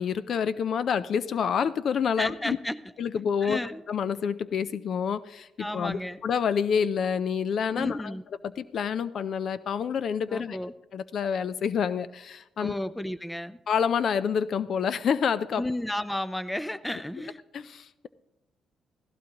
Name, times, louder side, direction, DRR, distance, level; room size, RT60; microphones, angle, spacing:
voice 1, 0.0-2.6 3.0-3.6 3.9-5.5 5.7-8.1 8.7-10.6 10.9-12.8 13.7-15.6 17.5-18.1, left 7 dB, 60° left, 15 dB, 0.4 m, -28 dB
voice 2, 2.2-2.8 3.4-3.8 5.6-6.2 7.7-8.2 10.3-10.7 12.6-13.6 15.6-17.4, left 1 dB, 5° left, 14 dB, 0.5 m, -32 dB
16.0 x 15.5 x 2.9 m, 0.91 s
cardioid pair, 90°, 0 cm